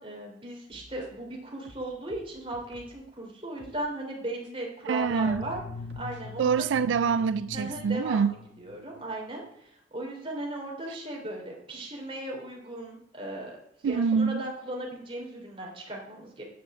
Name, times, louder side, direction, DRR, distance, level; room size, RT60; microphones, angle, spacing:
voice 1, 0.0-5.6 6.0-6.5 7.5-13.6 13.8-16.4, right 1 dB, 30° right, 3.1 m, -37 dB
sound 1, 0.7-1.3 1.6-3.0 3.6-3.8 4.4-4.5 5.3-6.2, right 1 dB, 75° right, 1.7 m, -53 dB
voice 2, 4.8-5.4 6.4-8.3 13.8-14.4, right 6 dB, 90° right, 0.3 m, -25 dB
sound 2, 5.0-9.1, left 4 dB, 85° left, 0.7 m, -43 dB
9.2 x 6.5 x 7.8 m
head